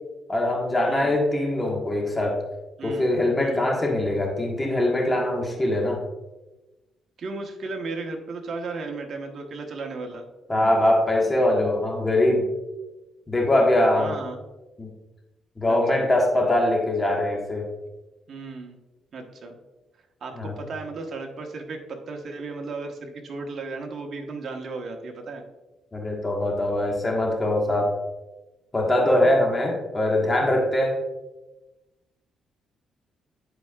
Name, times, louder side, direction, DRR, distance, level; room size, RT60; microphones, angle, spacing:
voice 1, 0.3-2.4 2.8-6.0 10.5-12.5 13.3-14.1 14.8-14.9 15.6-17.7 20.3-20.5 25.9-27.9 28.7-31.0, left 1 dB, 20° left, 0 dB, 1.5 m, -22 dB
voice 2, 2.8-3.1 3.4-3.6 7.2-10.2 14.0-14.4 15.7-16.1 18.3-18.8 19.1-19.5 20.2-25.4 29.1-29.3, right 3 dB, 55° right, 3 dB, 1.2 m, -35 dB
10.5 x 4.6 x 2.4 m, 1.1 s
cardioid pair, 90°, 0 cm